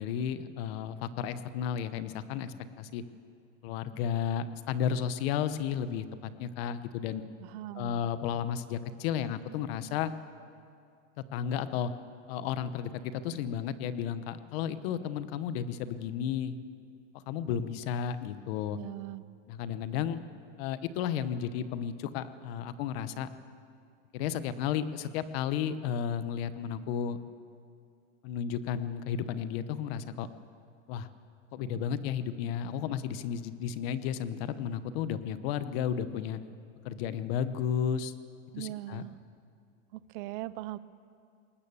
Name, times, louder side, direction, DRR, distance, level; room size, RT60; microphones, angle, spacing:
voice 1, 0.0-3.0 3.6-7.2 7.7-10.1 11.3-11.9 12.3-16.6 17.3-18.8 19.5-20.3 20.6-23.3 24.1-27.2 28.2-30.3 30.9-31.1 31.5-36.4 36.8-38.1 38.6-39.0, left 8 dB, 55° left, 13 dB, 1.0 m, -33 dB
voice 2, 7.4-8.0 18.7-19.2 38.5-39.2 39.9-40.8, right 16 dB, 45° right, 17 dB, 0.5 m, -40 dB
21.0 x 19.0 x 7.0 m, 2.4 s
supercardioid pair, 160°, 37 cm